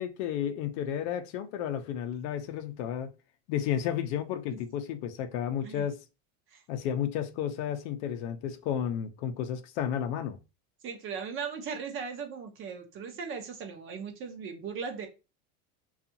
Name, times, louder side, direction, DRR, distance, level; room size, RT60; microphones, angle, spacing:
voice 1, 0.0-3.1 3.5-6.0 6.7-10.4, left 9 dB, 60° left, 0.5 m, -32 dB
voice 2, 10.8-15.1, right 6 dB, 35° right, 0.6 m, -38 dB
2.6 x 2.4 x 2.6 m
supercardioid pair, 125°, 39 cm